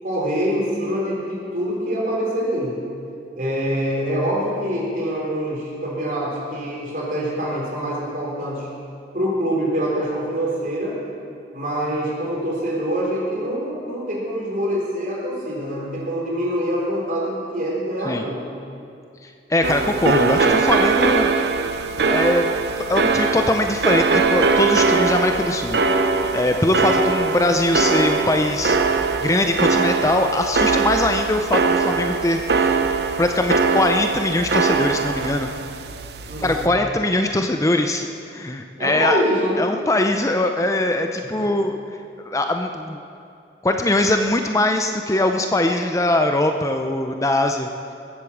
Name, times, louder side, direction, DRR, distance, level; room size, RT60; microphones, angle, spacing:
voice 1, 0.0-2.8 3.3-8.7 9.1-11.0 11.5-18.5 36.3-36.7 38.8-39.6 41.2-41.5, equal, 50° right, -3 dB, 3.9 m, -25 dB
voice 2, 19.2-21.3 22.1-22.5 22.9-25.8 26.3-28.8 29.2-32.8 33.2-35.5 36.4-39.2 39.6-41.8 42.3-43.0 43.6-47.7, left 1 dB, 20° left, 5 dB, 0.6 m, -21 dB
sound 1, 19.6-36.7, right 4 dB, 70° right, 0.8 m, -21 dB
21.0 x 8.3 x 7.2 m, 2.5 s
head